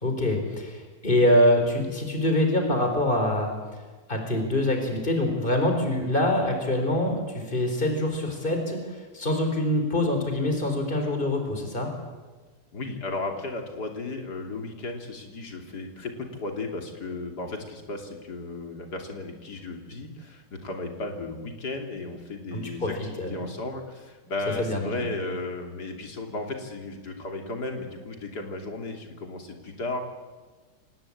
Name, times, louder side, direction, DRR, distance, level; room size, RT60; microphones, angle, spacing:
voice 1, 0.0-3.5 4.1-11.9 22.5-22.9 23.2-23.4 24.6-24.9, left 1 dB, 30° left, 4 dB, 4.3 m, -25 dB
voice 2, 12.7-30.0, left 2 dB, 60° left, 3 dB, 3.5 m, -35 dB
26.0 x 19.0 x 8.6 m, 1.4 s
omnidirectional pair, 1.9 m